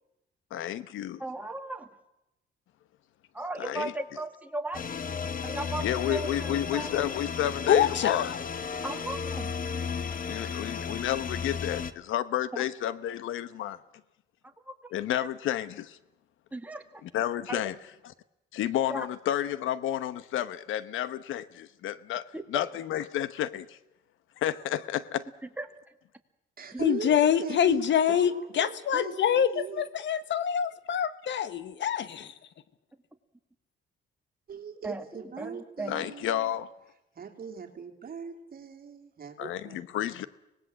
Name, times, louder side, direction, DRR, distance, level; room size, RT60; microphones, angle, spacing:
voice 1, 0.5-1.2 3.6-3.9 5.8-8.3 8.7-8.8 10.3-13.8 14.9-16.0 17.0-17.8 18.5-23.8 24.4-25.2 35.9-36.7 39.4-40.3, left 11 dB, 85° left, 15 dB, 1.1 m, -31 dB
voice 2, 1.2-1.9 3.3-4.9 5.4-6.9 8.8-9.5 12.5-12.6 14.6-14.9 15.2-15.3 16.5-17.0 17.5-17.6 18.9-19.1 22.3-22.4 25.6-25.7 26.7-26.8 34.8-36.1, right 2 dB, 10° right, 5 dB, 2.3 m, -37 dB
sound 1, 4.7-11.9, left 6 dB, 45° left, 1.1 m, -34 dB
voice 3, 7.7-8.4 26.8-32.3, left 9 dB, 65° left, 14 dB, 1.2 m, -25 dB
voice 4, 26.6-29.8 34.5-36.5 37.1-39.8, right 6 dB, 50° right, 4 dB, 2.9 m, -40 dB
25.0 x 19.0 x 7.6 m, 0.90 s
cardioid pair, 90°, 20 cm